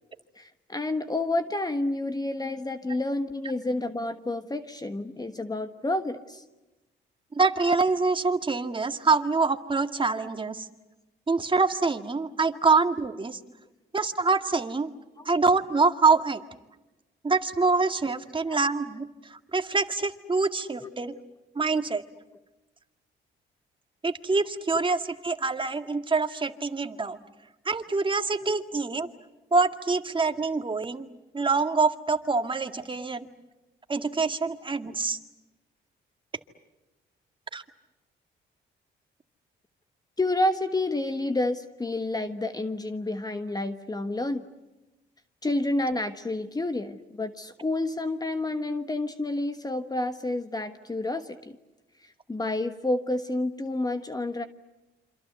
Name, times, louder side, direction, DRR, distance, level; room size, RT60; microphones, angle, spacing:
voice 1, 0.4-6.4 15.2-15.3 18.5-18.6 20.8-20.9 28.4-28.6 40.2-44.4 45.4-51.6 52.0-54.5, left 2 dB, 20° left, 9 dB, 1.4 m, -29 dB
voice 2, 7.3-10.7 11.3-13.4 13.9-14.9 15.3-16.4 17.2-21.1 21.6-22.0 24.0-27.2 27.7-29.1 29.5-31.1 31.3-33.3 33.9-35.2 37.5-37.6, right 4 dB, 25° right, 7 dB, 2.0 m, -25 dB
27.5 x 26.5 x 8.1 m, 1.1 s
cardioid pair, 90°, 20 cm